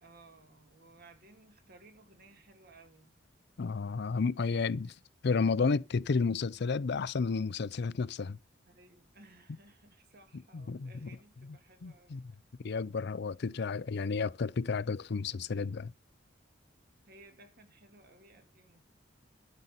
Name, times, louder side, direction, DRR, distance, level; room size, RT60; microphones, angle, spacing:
voice 1, 0.0-3.2 8.7-12.4 17.0-18.8, right 2 dB, 55° right, 2.5 m, -59 dB
voice 2, 3.6-4.9 5.2-8.4 10.5-11.1 11.8-12.2 12.6-15.9, left 4 dB, 60° left, 0.5 m, -32 dB
12.0 x 5.5 x 7.6 m
head